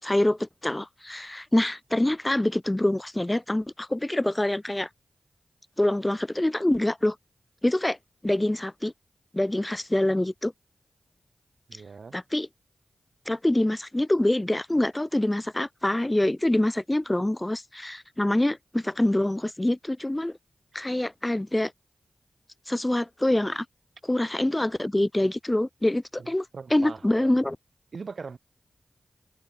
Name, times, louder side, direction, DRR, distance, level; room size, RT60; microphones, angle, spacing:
voice 1, 0.0-4.9 5.8-7.2 7.6-8.0 8.2-8.9 9.3-10.5 12.1-12.5 13.3-20.4 20.7-21.7 22.7-23.7 24.1-26.5 26.7-27.6, left 1 dB, 20° left, 5.3 m, -25 dB
voice 2, 11.7-12.2 26.2-26.3 26.5-27.3 27.9-28.4, right 5 dB, 70° right, 4.7 m, -40 dB
cardioid pair, 40°, 0 cm